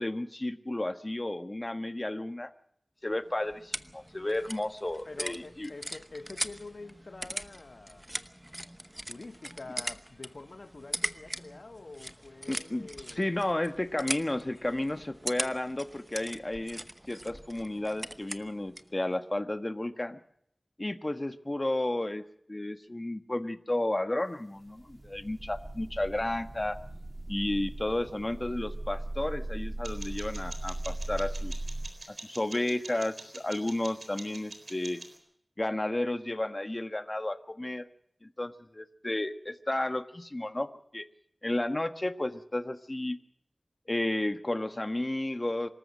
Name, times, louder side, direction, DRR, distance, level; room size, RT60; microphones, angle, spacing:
voice 1, 0.0-2.5 3.0-5.7 12.5-12.9 13.2-20.2 20.8-26.8 27.3-31.5 32.1-35.0 35.6-37.8 38.2-41.1 41.4-43.2 43.9-45.7, left 1 dB, 35° left, 1.3 m, -32 dB
sound 1, 3.1-19.0, equal, 10° right, 0.9 m, -41 dB
voice 2, 5.0-8.1 9.1-13.3, left 3 dB, 65° left, 1.2 m, -46 dB
sound 2, 24.5-31.9, right 1 dB, 45° right, 2.8 m, -38 dB
sound 3, 29.8-35.2, right 2 dB, 80° right, 3.9 m, -46 dB
25.0 x 14.0 x 7.5 m
wide cardioid pair, 55°, 0 cm